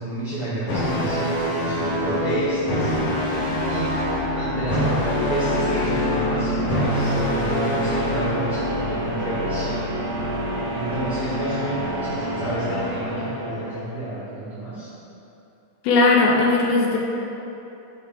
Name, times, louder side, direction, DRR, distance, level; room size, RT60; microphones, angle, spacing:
voice 1, 0.0-2.9 3.6-3.9 4.3-5.0 5.3-9.8 10.7-14.9, right 1 dB, 70° right, -11 dB, 1.3 m, -29 dB
sound 1, 0.7-8.6, equal, 50° left, 1.8 m, -25 dB
sound 2, 1.3-14.1, left 1 dB, 50° right, 2.0 m, -28 dB
voice 2, 15.8-17.0, left 3 dB, 80° left, -2 dB, 2.5 m, -17 dB
8.1 x 4.9 x 3.4 m, 2.9 s
omnidirectional pair, 4.6 m